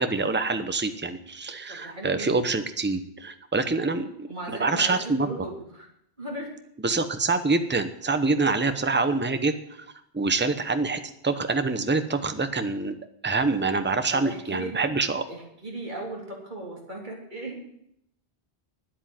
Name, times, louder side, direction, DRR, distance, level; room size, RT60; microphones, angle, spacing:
voice 1, 0.0-4.3 4.6-5.3 6.8-9.8 10.1-13.0 13.2-15.2, right 3 dB, 10° right, 9 dB, 0.8 m, -26 dB
voice 2, 1.7-2.4 3.7-4.0 4.3-5.9 6.2-6.5 14.1-14.7 15.3-17.6, right 2 dB, 45° right, -2 dB, 3.6 m, -37 dB
10.0 x 8.5 x 9.2 m, 0.74 s
omnidirectional pair, 1.1 m